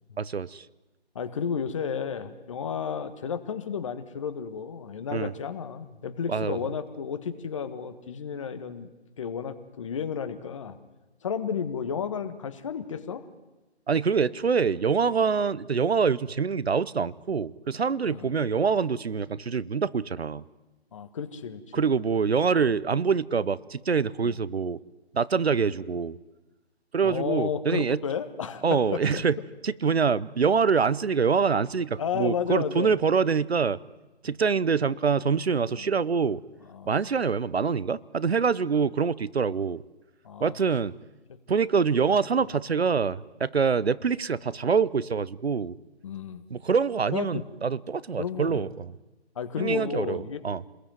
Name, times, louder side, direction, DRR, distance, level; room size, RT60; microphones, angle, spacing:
voice 1, 0.2-0.6 5.1-5.3 6.3-6.6 13.9-20.4 21.7-24.8 25.1-26.2 26.9-28.0 28.6-29.4 29.6-33.8 34.2-36.4 36.9-39.8 40.4-40.9 41.5-45.7 46.5-48.8 49.6-50.6, right 5 dB, 65° right, 20 dB, 1.0 m, -25 dB
voice 2, 1.1-8.9 9.2-10.8 11.2-13.2 18.1-18.3 20.9-21.6 24.2-24.4 27.0-28.6 28.9-29.2 32.0-32.9 35.7-35.9 36.7-37.0 40.2-40.6 42.1-42.2 46.0-46.4 47.1-47.4 48.2-48.7 49.3-50.4, left 7 dB, 30° left, 10 dB, 1.6 m, -32 dB
30.0 x 21.0 x 9.4 m, 1.1 s
figure-of-eight pair, 155°, 33 cm